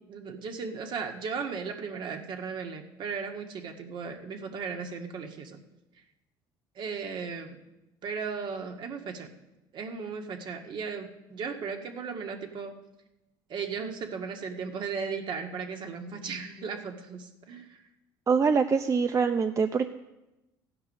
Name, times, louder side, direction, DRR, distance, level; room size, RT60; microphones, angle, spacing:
voice 1, 0.1-5.6 6.8-7.6 8.0-9.3 9.7-12.8 13.5-17.8, right 5 dB, 55° right, 4 dB, 1.9 m, -36 dB
voice 2, 18.3-19.9, right 5 dB, 35° right, 8 dB, 0.7 m, -24 dB
14.5 x 9.0 x 6.5 m, 0.98 s
supercardioid pair, 85°, 10 cm